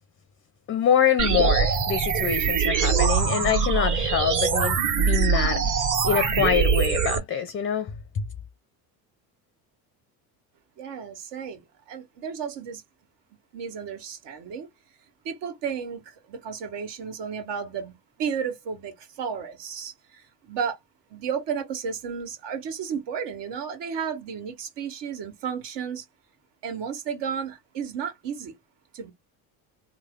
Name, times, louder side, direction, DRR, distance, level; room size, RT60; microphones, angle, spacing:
voice 1, 0.7-8.2, left 9 dB, 30° left, 0.5 m, -25 dB
sound 1, 1.2-7.2, right 6 dB, 40° right, 1.7 m, -23 dB
voice 2, 10.8-12.8 13.5-14.7 15.2-20.8 21.1-26.1 26.6-28.5 28.9-29.1, right 7 dB, 65° right, 1.8 m, -33 dB
3.3 x 2.1 x 3.6 m
supercardioid pair, 100°, 45 cm